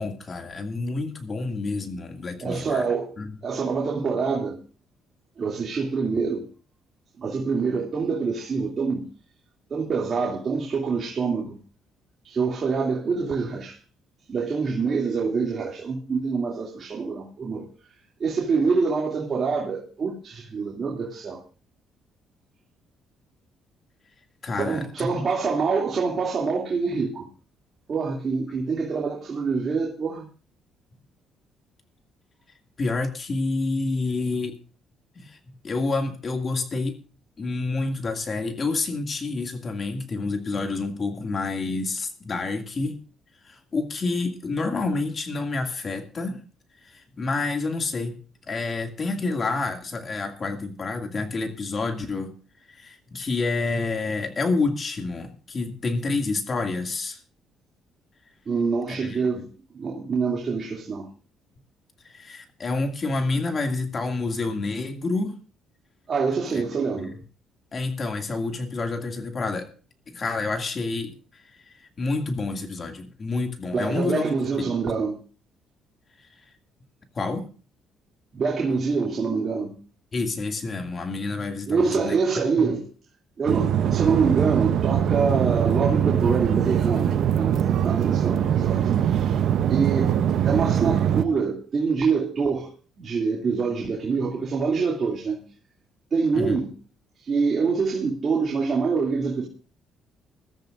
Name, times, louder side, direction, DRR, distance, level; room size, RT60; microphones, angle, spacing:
voice 1, 0.0-2.8 3.2-3.4 24.4-25.3 32.8-34.6 35.2-35.4 35.6-37.0 37.4-43.0 43.4-46.4 46.8-48.1 48.5-52.3 52.7-57.2 58.9-59.5 62.0-65.4 66.5-66.6 67.0-67.1 67.7-69.7 70.1-74.2 74.6-74.7 76.2-76.3 77.1-77.5 80.1-82.2 82.6-82.7 96.3-96.6, left 3 dB, 40° left, 2.3 m, -28 dB
voice 2, 2.4-3.1 3.4-4.6 5.4-6.5 7.2-9.1 9.7-11.6 12.2-13.8 14.3-17.7 18.2-21.4 24.6-27.3 27.9-30.3 58.5-59.4 59.7-61.1 66.1-67.1 73.7-75.2 78.3-79.8 81.7-82.9 83.4-89.2 89.7-90.2 90.4-92.7 93.0-95.4 96.1-96.7 97.2-99.5, right 5 dB, 45° right, 2.7 m, -25 dB
sound 1, 83.5-91.2, right 9 dB, 70° right, 0.7 m, -22 dB
21.0 x 13.5 x 2.6 m
cardioid pair, 85°, 0 cm